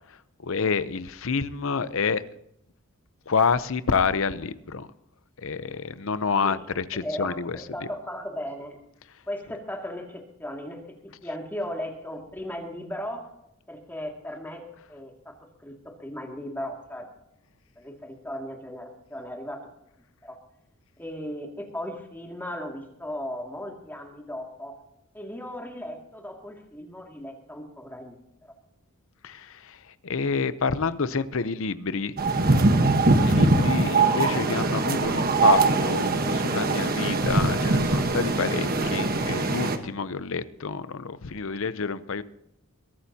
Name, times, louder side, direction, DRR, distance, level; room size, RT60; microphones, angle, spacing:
voice 1, 0.4-2.2 3.3-4.9 5.4-7.6 29.2-32.1 33.2-42.2, left 5 dB, 65° left, 0.7 m, -28 dB
voice 2, 6.9-8.8 9.3-13.3 13.7-15.3 15.6-17.1 17.8-19.7 20.2-20.4 21.0-24.8 25.1-28.2 28.4-28.5, left 1 dB, 10° left, 2.3 m, -37 dB
sound 1, 32.2-39.8, right 3 dB, 45° right, 1.2 m, -22 dB
22.0 x 13.0 x 2.8 m
head